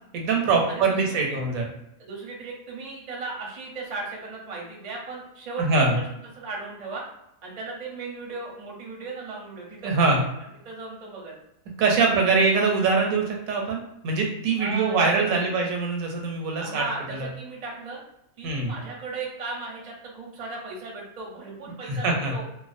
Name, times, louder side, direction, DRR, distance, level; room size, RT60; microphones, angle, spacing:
voice 1, 0.1-1.7 5.6-6.0 9.8-10.2 11.8-17.3 18.4-18.7 21.9-22.3, right 4 dB, 80° right, 0 dB, 1.0 m, -23 dB
voice 2, 0.7-1.3 2.0-6.1 6.4-7.0 7.4-10.2 10.6-11.4 11.8-12.5 13.0-13.1 14.6-15.5 16.6-18.0 18.4-22.4, right 3 dB, 40° right, -2 dB, 0.6 m, -36 dB
2.4 x 2.2 x 2.5 m, 0.84 s
omnidirectional pair, 1.4 m